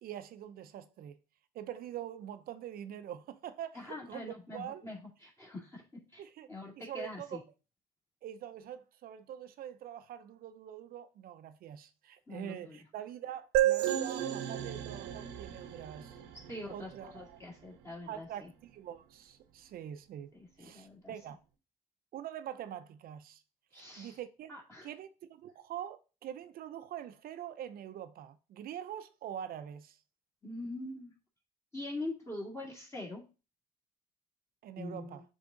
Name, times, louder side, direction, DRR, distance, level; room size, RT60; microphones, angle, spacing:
voice 1, 0.0-1.2 1.5-4.8 6.2-6.5 6.8-7.4 8.2-16.2 16.7-17.4 18.1-20.3 20.6-21.4 22.1-23.4 23.7-24.5 24.8-30.0 34.6-35.2, right 10 dB, 60° right, 0.6 m, -44 dB
voice 2, 3.7-5.8 6.1-6.2 6.5-7.4 12.3-12.8 16.5-18.5 20.3-21.1 23.7-24.2 24.5-24.9 30.4-31.1 31.7-33.2 34.8-35.2, left 2 dB, 15° left, 2.1 m, -43 dB
sound 1, 13.5-17.1, right 12 dB, 90° right, 0.8 m, -32 dB
6.9 x 3.6 x 3.9 m
cardioid pair, 110°, 17 cm